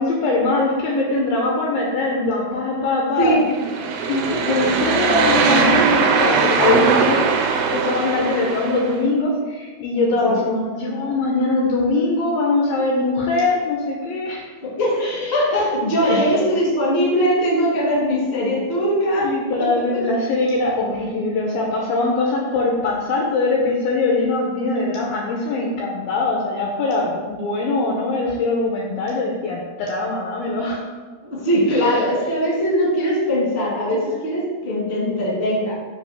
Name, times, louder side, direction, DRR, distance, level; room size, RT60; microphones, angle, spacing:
voice 1, 0.0-3.6 4.0-7.4 7.7-14.5 15.0-15.7 16.0-16.5 19.0-30.9 31.7-31.9, left 3 dB, 80° left, -1 dB, 2.1 m, -22 dB
sound 1, 3.5-9.0, right 5 dB, 80° right, 2.4 m, -20 dB
voice 2, 14.6-15.0 15.3-19.3 19.6-19.7 31.2-35.7, equal, 40° left, -6 dB, 0.8 m, -20 dB
7.3 x 2.8 x 5.8 m, 1.4 s
omnidirectional pair, 4.8 m